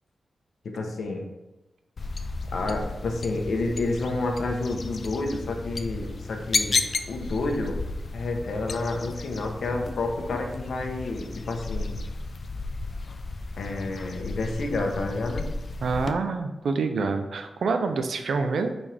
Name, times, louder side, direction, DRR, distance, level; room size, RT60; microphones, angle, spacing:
voice 1, 0.6-1.2 2.5-6.8 7.1-7.8 8.1-12.0 13.6-15.5, left 2 dB, 80° left, 2 dB, 1.2 m, -29 dB
sound 1, 2.0-16.1, left 3 dB, 55° left, 0.5 m, -33 dB
voice 2, 15.8-18.8, right 4 dB, 90° right, 7 dB, 0.7 m, -26 dB
8.7 x 4.4 x 3.5 m, 1.0 s
wide cardioid pair, 110°, 0 cm